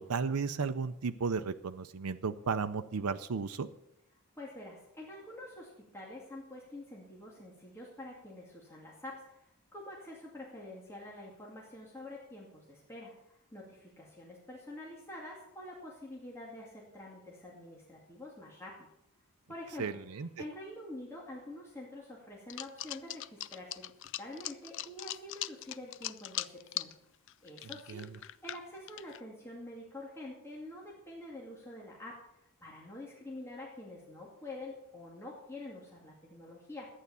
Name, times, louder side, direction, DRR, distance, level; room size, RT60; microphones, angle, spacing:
voice 1, 0.0-3.7 19.8-20.3 27.9-28.1, right 5 dB, 85° right, 9 dB, 0.6 m, -34 dB
voice 2, 4.4-18.9 19.5-23.9 24.2-26.9 27.4-36.9, left 1 dB, 10° left, -3 dB, 2.2 m, -47 dB
sound 1, 22.5-26.9 27.3-29.2, left 14 dB, 55° left, 0.4 m, -40 dB
11.5 x 9.4 x 6.9 m, 0.79 s
head